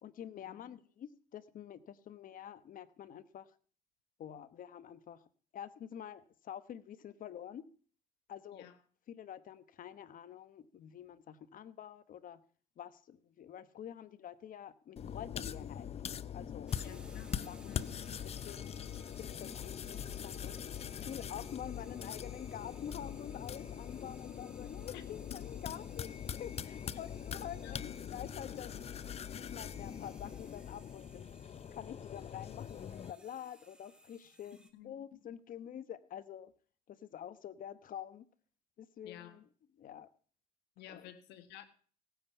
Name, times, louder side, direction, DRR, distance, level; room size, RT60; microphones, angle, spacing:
voice 1, 0.0-3.5 4.2-5.2 5.5-7.7 8.3-8.7 9.1-12.4 12.8-15.9 16.3-17.9 18.4-18.7 19.2-20.6 21.1-26.1 26.4-29.0 29.4-31.3 31.7-34.6 34.8-36.5 36.9-38.3 38.8-39.4 39.8-40.1 40.9-41.1, left 9 dB, 55° left, 1.1 m, -47 dB
sound 1, 15.0-33.1, left 8 dB, 35° left, 0.6 m, -42 dB
sound 2, 16.7-34.7, right 1 dB, 5° right, 1.7 m, -61 dB
voice 2, 16.8-17.9 24.9-25.0 27.6-27.8 34.7-35.2 39.0-39.4 40.8-41.7, left 11 dB, 90° left, 1.6 m, -53 dB
17.0 x 9.5 x 5.6 m
cardioid pair, 110°, 17 cm